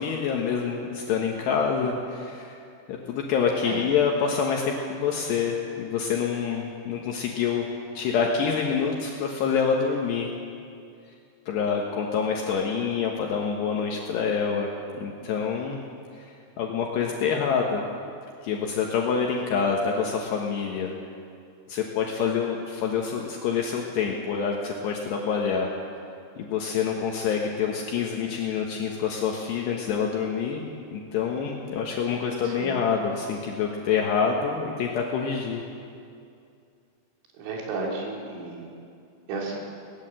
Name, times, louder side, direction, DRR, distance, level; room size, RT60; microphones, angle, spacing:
voice 1, 0.0-2.6 2.9-7.7 7.9-10.3 11.5-14.7 15.0-15.8 16.2-16.3 16.6-17.8 18.4-20.9 21.7-25.7 26.4-30.6 30.9-35.6, left 6 dB, 70° left, 0 dB, 3.3 m, -26 dB
voice 2, 32.4-32.8 37.4-38.7 39.3-39.6, right 3 dB, 80° right, -2 dB, 5.5 m, -33 dB
20.0 x 19.0 x 7.7 m, 2.5 s
omnidirectional pair, 5.4 m